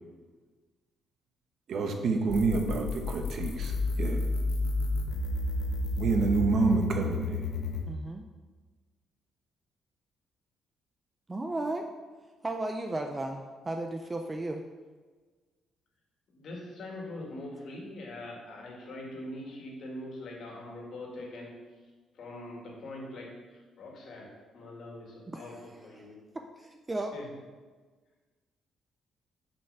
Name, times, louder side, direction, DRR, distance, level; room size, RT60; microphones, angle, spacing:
voice 1, 1.7-4.2 6.0-7.5, right 4 dB, 45° right, 4 dB, 0.9 m, -28 dB
sound 1, 2.3-7.9, left 2 dB, 70° left, 1.1 m, -31 dB
voice 2, 7.9-8.2 11.3-11.9 12.4-14.6 25.3-25.5 26.0-26.1 26.6-27.1, right 2 dB, 15° right, 4 dB, 0.4 m, -34 dB
voice 3, 16.3-21.5 22.1-24.3 24.5-26.1 27.1-27.3, left 1 dB, 50° left, -1 dB, 2.1 m, -43 dB
6.7 x 5.6 x 6.7 m, 1.4 s
cardioid pair, 175°, 0 cm